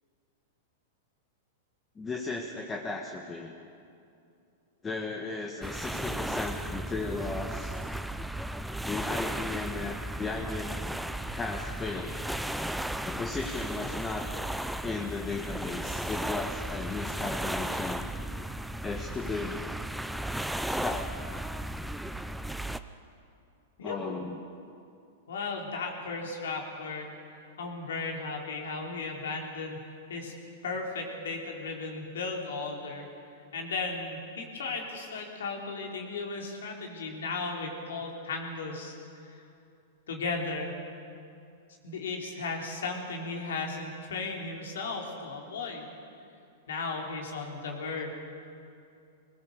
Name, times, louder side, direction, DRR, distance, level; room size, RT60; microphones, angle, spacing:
voice 1, 1.9-3.5 4.8-7.7 8.8-10.8 11.3-12.2 13.0-14.3 14.8-18.1 18.8-19.6 20.7-21.2 23.8-24.4, left 3 dB, 15° left, 1 dB, 1.5 m, -36 dB
sound 1, 5.6-22.8, right 1 dB, ahead, 0.6 m, -35 dB
voice 2, 23.8-24.2 25.3-27.1 27.6-29.8 30.1-30.3 30.6-33.1 33.5-39.4 40.1-40.8 41.8-45.9 46.7-48.1, left 3 dB, 80° left, 1 dB, 3.7 m, -35 dB
20.5 x 20.0 x 6.8 m, 2.6 s
hypercardioid pair, 120°, 0 cm